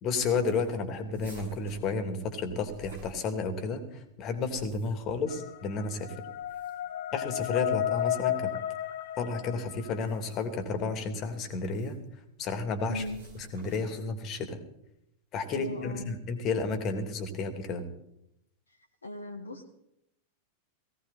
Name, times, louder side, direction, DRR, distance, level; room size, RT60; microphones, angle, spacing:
voice 1, 0.0-6.2 7.1-8.5 9.2-12.0 12.4-13.0 13.5-14.6 15.3-17.8, left 4 dB, 35° left, 8 dB, 2.9 m, -32 dB
sound 1, 1.1-3.8 4.3-5.2 6.3-7.0 7.8-8.1 9.9-10.6 11.6-12.1 12.9-14.1, right 1 dB, 65° right, 7.0 m, -51 dB
sound 2, 5.3-10.3, left 12 dB, 60° left, 1.1 m, -33 dB
voice 2, 12.9-13.2 15.5-16.1 18.7-19.6, left 1 dB, 75° left, 2 dB, 1.7 m, -39 dB
19.0 x 17.0 x 4.2 m, 0.80 s
figure-of-eight pair, 90°, 0 cm